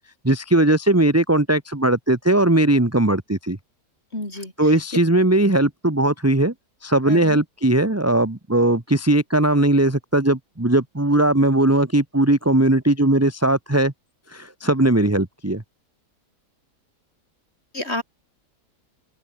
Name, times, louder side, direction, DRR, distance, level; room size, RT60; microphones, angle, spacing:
voice 1, 0.2-3.6 4.6-6.5 6.8-13.9 14.3-15.6, right 1 dB, 10° right, 1.5 m, -19 dB
voice 2, 4.1-4.5 7.1-7.4 17.7-18.0, left 1 dB, 35° left, 6.8 m, -29 dB
open air
omnidirectional pair, 1.8 m